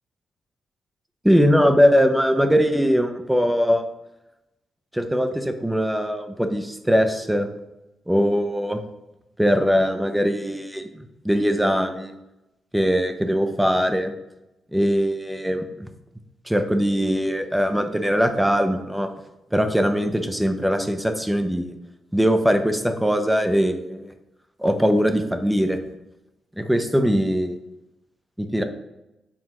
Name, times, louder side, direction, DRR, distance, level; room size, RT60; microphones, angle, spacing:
voice 1, 1.2-3.8 4.9-7.5 8.1-8.8 9.4-12.1 12.7-14.1 14.7-15.9 16.5-19.1 19.5-21.8 22.1-24.1 24.6-25.8 26.6-27.6 28.4-28.6, equal, 5° right, 7 dB, 0.5 m, -21 dB
7.5 x 4.8 x 3.0 m, 0.94 s
wide cardioid pair, 150°, 0 cm